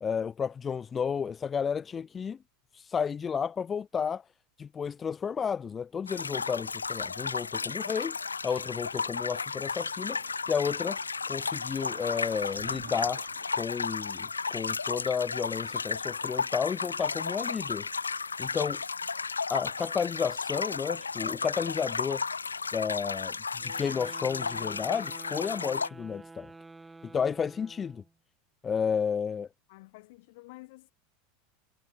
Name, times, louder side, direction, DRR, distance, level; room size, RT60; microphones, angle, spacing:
voice 1, 0.0-2.4 2.7-4.2 4.6-8.2 8.4-11.0 11.3-13.2 13.5-17.9 18.4-18.8 19.5-22.2 22.7-23.3 23.6-26.5 27.1-28.0 28.6-29.5, left 6 dB, 25° left, 0.4 m, -32 dB
sound 1, 6.1-25.9, left 4 dB, 85° left, 0.6 m, -34 dB
sound 2, 10.4-14.0, right 15 dB, 65° right, 3.4 m, -51 dB
sound 3, 23.6-28.1, right 3 dB, 10° right, 4.1 m, -49 dB
voice 2, 29.7-30.9, left 22 dB, 60° left, 2.4 m, -51 dB
figure-of-eight pair, 85°, 0 cm